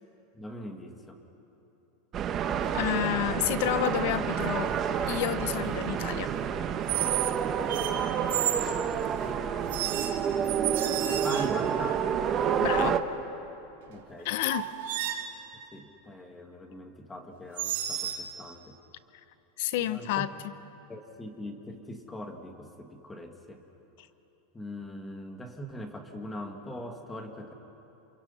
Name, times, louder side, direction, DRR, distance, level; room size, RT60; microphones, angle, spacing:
voice 1, 0.3-1.2 10.3-10.9 11.2-12.1 13.9-14.3 15.7-18.8 19.8-20.3 20.9-23.6 24.5-27.5, left 1 dB, 10° left, 4 dB, 2.0 m, -41 dB
sound 1, 2.1-13.0, right 8 dB, 30° right, 1.1 m, -29 dB
sound 2, 2.5-2.9 4.6-5.0 6.9-7.4 7.7-8.7 9.7-11.7 13.9-14.0 14.4-15.3 17.6-18.2, right 11 dB, 80° right, 2.2 m, -32 dB
voice 2, 2.7-4.7 5.0-6.3 12.6-13.0 14.2-14.7 19.6-20.3, left 13 dB, 65° left, 14 dB, 0.8 m, -29 dB
28.5 x 27.5 x 5.6 m, 2.9 s
supercardioid pair, 150°, 0 cm